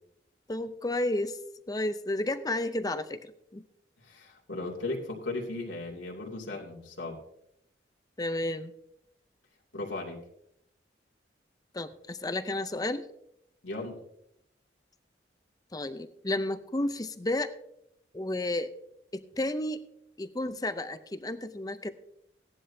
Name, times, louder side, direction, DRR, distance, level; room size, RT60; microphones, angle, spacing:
voice 1, 0.5-1.4 1.7-3.6 8.2-8.7 11.7-13.1 15.7-17.5 18.1-18.7 19.1-19.9 20.2-21.9, left 1 dB, 20° left, 11 dB, 0.6 m, -32 dB
voice 2, 4.0-7.2 9.7-10.2 13.6-14.0, left 2 dB, 85° left, -2 dB, 2.6 m, -36 dB
17.0 x 11.0 x 2.7 m, 0.75 s
head